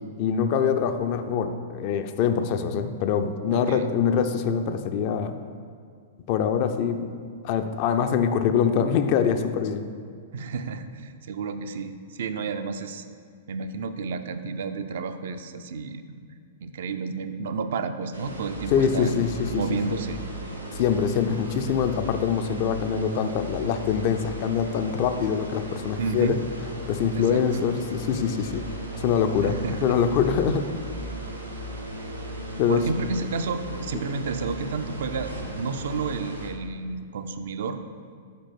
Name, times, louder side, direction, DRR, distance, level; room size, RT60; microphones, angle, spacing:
voice 1, 0.2-5.4 6.3-9.9 18.7-19.6 19.9-20.0 20.7-26.3 26.9-28.7 29.0-29.5 29.8-30.7 32.6-32.8, left 7 dB, 40° left, 8 dB, 0.4 m, -24 dB
voice 2, 3.5-3.9 10.3-13.1 13.5-16.0 16.6-19.1 19.5-20.2 26.0-26.4 27.1-27.4 29.4-29.9 32.7-37.8, right 5 dB, 55° right, 9 dB, 0.4 m, -31 dB
sound 1, 18.1-36.5, equal, 85° right, 1.0 m, -36 dB
5.2 x 4.1 x 5.9 m, 2.2 s
figure-of-eight pair, 105°, 0 cm